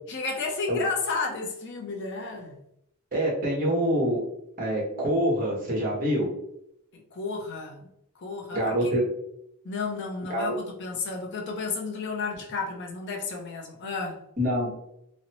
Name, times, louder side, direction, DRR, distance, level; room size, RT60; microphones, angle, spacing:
voice 1, 0.1-2.6 6.9-7.9 8.2-8.9 9.6-14.2, left 4 dB, 50° left, 1 dB, 0.6 m, -32 dB
voice 2, 3.1-4.2 4.6-6.3 8.5-9.0 10.3-10.6 14.4-14.8, equal, 40° right, -3 dB, 1.3 m, -25 dB
3.9 x 2.1 x 2.9 m, 0.78 s
head